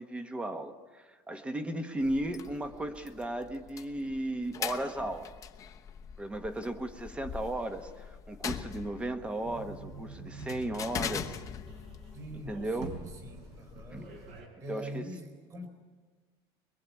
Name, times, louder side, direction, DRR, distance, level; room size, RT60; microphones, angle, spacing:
voice 1, 0.0-5.3 6.2-11.4 12.5-12.9 13.9-14.0 14.7-15.0, right 1 dB, 10° right, 9 dB, 1.3 m, -35 dB
sound 1, 2.0-14.4, left 8 dB, 25° left, 1.0 m, -43 dB
sound 2, 9.4-14.5, right 4 dB, 55° right, 4.9 m, -46 dB
voice 2, 12.1-14.1 14.6-15.7, equal, 25° right, 6 dB, 4.0 m, -44 dB
23.0 x 22.5 x 8.4 m, 1.4 s
cardioid pair, 165°, 12 cm